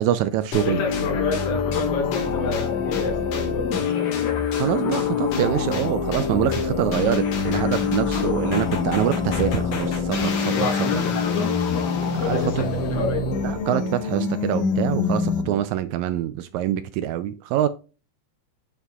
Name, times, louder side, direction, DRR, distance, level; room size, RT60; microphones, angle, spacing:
voice 1, 0.0-0.8 4.5-10.7 12.2-12.6 13.4-17.7, right 11 dB, 80° right, 1.7 m, -25 dB
sound 1, 0.5-15.6, left 5 dB, 80° left, 3.2 m, -25 dB
voice 2, 0.6-4.4 8.2-8.5 10.5-11.6 12.2-13.3, left 3 dB, 55° left, 2.8 m, -30 dB
9.1 x 6.8 x 2.3 m
omnidirectional pair, 3.6 m